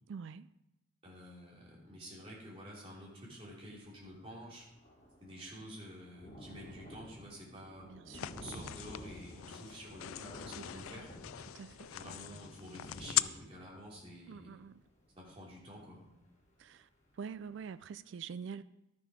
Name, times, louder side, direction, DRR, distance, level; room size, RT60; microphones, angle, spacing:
voice 1, 0.1-0.5 7.9-8.6 10.7-10.8 11.5-11.8 14.3-14.8 16.6-16.9 17.2-18.6, right 6 dB, 60° right, 0.3 m, -45 dB
voice 2, 1.0-4.6 5.2-7.9 8.3-11.1 11.9-14.6 15.1-16.0, equal, 30° right, 3.0 m, -50 dB
Thunder, 3.7-3.8 4.0-16.7 17.2-17.3 17.6-17.7, equal, 35° left, 1.6 m, -53 dB
sound 1, 8.1-13.2, left 15 dB, 80° left, 0.3 m, -40 dB
12.0 x 6.8 x 4.9 m
head